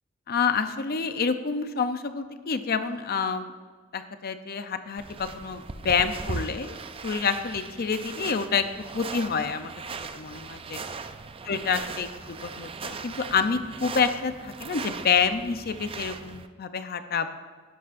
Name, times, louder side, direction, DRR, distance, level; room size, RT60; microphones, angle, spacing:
voice 1, 0.3-3.5 3.9-6.8 7.0-8.7 8.9-9.7 10.1-10.8 11.5-17.3, left 6 dB, 50° left, 9 dB, 0.6 m, -28 dB
sound 1, 5.0-16.5, right 4 dB, 25° right, 0.4 m, -39 dB
12.0 x 11.0 x 2.6 m, 1.5 s
head